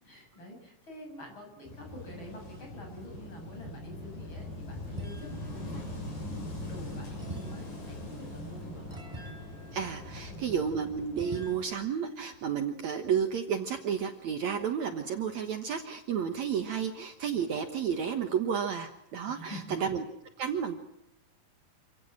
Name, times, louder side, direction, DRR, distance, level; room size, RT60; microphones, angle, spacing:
voice 1, 0.0-9.0 10.3-10.7 19.3-19.9, equal, 35° left, 2 dB, 7.8 m, -47 dB
Wind / Waves surf, 1.7-11.7, left 1 dB, 80° left, 8.7 m, -42 dB
sound 1, 5.0-5.6 7.2-10.6 11.2-11.6, right 1 dB, 10° right, 3.0 m, -45 dB
voice 2, 9.7-20.0 20.4-20.8, right 7 dB, 60° right, 6 dB, 2.4 m, -31 dB
28.0 x 17.5 x 7.4 m, 0.83 s
omnidirectional pair, 4.1 m